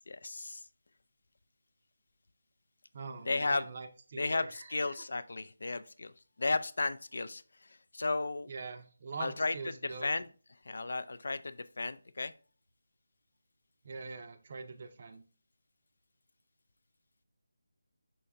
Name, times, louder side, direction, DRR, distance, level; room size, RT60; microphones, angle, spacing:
voice 1, 0.1-0.6 3.2-3.7 4.1-6.1 6.4-7.4 7.9-8.5 9.2-9.6 9.8-10.3 10.7-12.3, left 3 dB, 65° left, 13 dB, 0.4 m, -34 dB
voice 2, 2.9-4.6 8.5-10.1 13.8-15.2, right 4 dB, 35° right, 8 dB, 0.6 m, -43 dB
5.3 x 2.7 x 3.4 m, 0.39 s
figure-of-eight pair, 170°, 0 cm